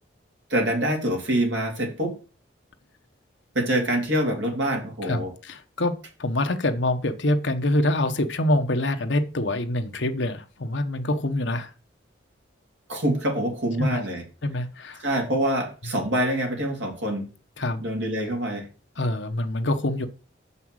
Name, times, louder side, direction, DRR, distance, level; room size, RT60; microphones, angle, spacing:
voice 1, 0.5-2.2 3.5-5.3 12.9-14.2 15.0-17.3 17.8-18.7, right 1 dB, 70° right, 1 dB, 3.1 m, -25 dB
voice 2, 5.0-11.7 13.8-14.0 14.4-15.0 17.6-17.8 19.0-20.1, left 1 dB, 70° left, 7 dB, 1.0 m, -25 dB
7.3 x 5.6 x 6.2 m, 0.35 s
head